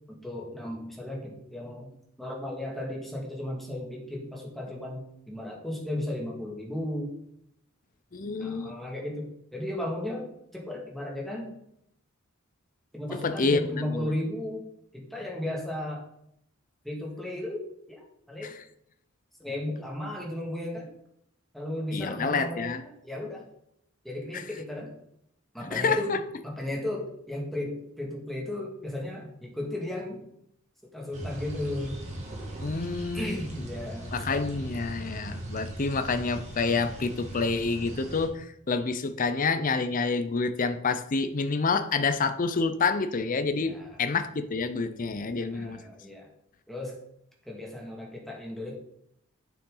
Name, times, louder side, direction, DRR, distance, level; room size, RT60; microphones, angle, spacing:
voice 1, 0.1-1.9 2.2-7.2 8.4-11.5 12.9-14.7 14.9-16.0 16.8-17.6 17.9-18.0 18.3-18.6 19.4-20.9 21.5-23.4 24.0-24.9 25.5-26.2 26.4-30.3 30.9-32.1 33.1-34.1 43.6-44.0 45.5-46.3 46.7-47.0 47.5-48.8, left 1 dB, ahead, -1 dB, 1.9 m, -35 dB
voice 2, 8.1-8.8 13.1-14.1 18.4-18.6 21.9-22.8 24.3-24.4 25.6-26.2 32.6-33.4 34.1-45.8, left 4 dB, 40° left, 10 dB, 0.6 m, -28 dB
sound 1, 31.1-38.3, right 1 dB, 35° right, 2.1 m, -39 dB
8.7 x 7.0 x 3.8 m, 0.74 s
head